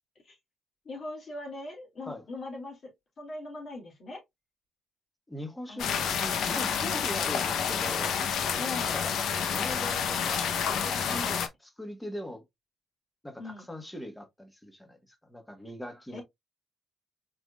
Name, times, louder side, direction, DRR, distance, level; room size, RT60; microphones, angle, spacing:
voice 1, 0.8-4.2 5.7-6.0 6.5-6.7 8.6-9.0 11.1-11.4 13.4-13.6 16.1-16.2, left 2 dB, 50° left, 2.6 m, -40 dB
voice 2, 5.3-8.2 8.9-9.1 9.5-11.4 11.8-12.4 13.2-16.2, left 1 dB, 10° left, 1.4 m, -41 dB
sound 1, 5.8-11.5, left 7 dB, 75° left, 0.8 m, -29 dB
4.8 x 3.7 x 2.4 m
cardioid pair, 90°, 0 cm